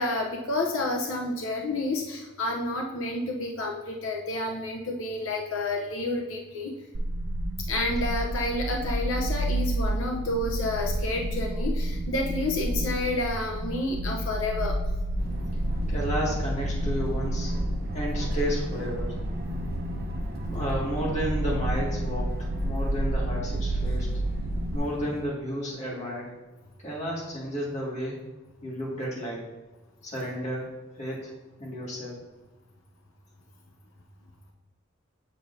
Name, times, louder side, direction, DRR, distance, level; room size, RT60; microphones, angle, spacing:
voice 1, 0.0-6.7 7.7-14.8, left 2 dB, 90° left, 0 dB, 0.8 m, -30 dB
sound 1, 6.9-24.8, right 1 dB, 80° right, 0.6 m, -30 dB
sound 2, 15.2-25.2, equal, 50° right, 1.0 m, -39 dB
voice 2, 15.9-17.5 17.9-19.2 20.5-24.1 24.7-26.4 26.8-28.2 28.6-29.5 30.0-31.3 31.6-32.2, equal, 35° left, -4 dB, 2.1 m, -32 dB
7.7 x 6.6 x 2.7 m, 1.2 s
head